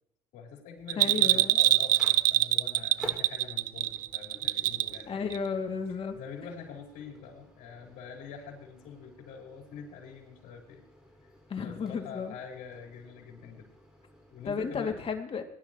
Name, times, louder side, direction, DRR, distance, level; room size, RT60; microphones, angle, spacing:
voice 1, 0.3-5.5 6.1-10.8 11.2-11.3 11.6-13.7 14.3-15.0, left 6 dB, 70° left, 1 dB, 4.7 m, -45 dB
Bell, 0.9-5.0 5.3-5.4, right 16 dB, 70° right, 0.5 m, -24 dB
voice 2, 1.0-1.6 5.1-6.2 11.5-12.3 14.5-15.4, left 5 dB, 45° left, 4 dB, 2.4 m, -33 dB
Microwave oven, 1.1-14.7, equal, 5° right, 5.3 m, -53 dB
20.5 x 11.5 x 3.0 m, 0.76 s
supercardioid pair, 80°, 14 cm